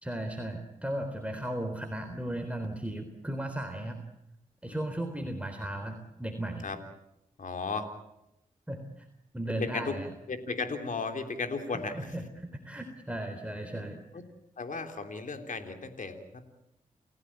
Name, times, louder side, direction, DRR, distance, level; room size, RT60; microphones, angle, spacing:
voice 1, 0.0-4.0 4.6-6.6 8.7-9.1 9.3-10.1 11.9-14.0, right 1 dB, 10° right, 4 dB, 3.8 m, -36 dB
voice 2, 7.4-7.9 9.6-10.0 10.3-12.1 14.1-14.2 14.6-16.4, left 4 dB, 65° left, 6 dB, 3.4 m, -35 dB
29.5 x 16.5 x 8.7 m, 0.86 s
cardioid pair, 55°, 15 cm